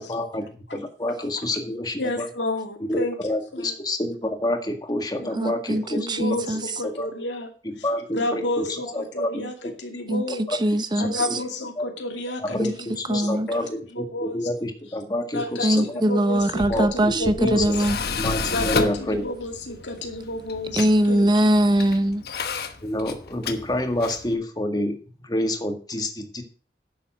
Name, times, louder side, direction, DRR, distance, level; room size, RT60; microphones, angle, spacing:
voice 1, 0.0-2.3 2.9-6.4 6.8-7.1 7.6-9.3 9.6-9.7 10.5-10.6 11.0-11.4 11.8-11.9 12.4-16.0 16.7-17.8 18.2-19.2 22.8-25.0 25.2-26.4, left 1 dB, 25° left, 5 dB, 1.8 m, -28 dB
voice 2, 2.0-3.1 3.5-3.7 5.2-5.5 5.9-7.5 8.1-9.5 9.8-10.4 11.0-12.6 13.1-13.6 13.9-14.4 15.3-17.7 18.5-21.3, left 1 dB, 85° left, 4 dB, 2.4 m, -30 dB
voice 3, 5.3-6.7 10.1-11.4 12.6-12.7 13.1-13.5 15.6-18.0 20.7-22.2, right 1 dB, 25° right, 11 dB, 0.8 m, -22 dB
Tools, 16.4-24.3, left 4 dB, 60° left, 1.2 m, -32 dB
10.5 x 7.5 x 6.2 m, 0.40 s
head